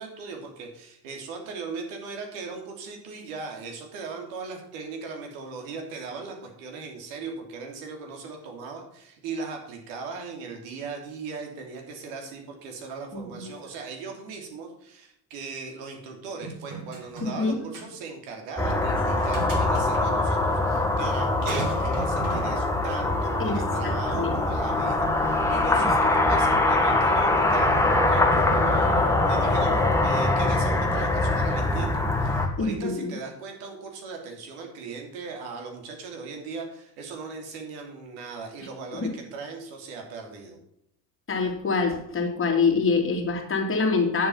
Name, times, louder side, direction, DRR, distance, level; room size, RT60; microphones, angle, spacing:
voice 1, 0.0-40.6, right 4 dB, 65° right, 2 dB, 3.3 m, -38 dB
voice 2, 13.1-13.5 17.2-17.6 23.4-24.4 25.8-25.9 32.6-33.1 38.9-39.1 41.3-44.3, left 4 dB, 25° left, 2 dB, 3.0 m, -26 dB
sound 1, 16.4-17.4 17.7-17.9 18.9-20.0 21.5-22.5, right 4 dB, 40° right, 3.6 m, -37 dB
sound 2, 18.6-32.5, left 2 dB, 5° left, 1.9 m, -23 dB
9.5 x 7.6 x 5.7 m, 0.74 s
hypercardioid pair, 80°, 50 cm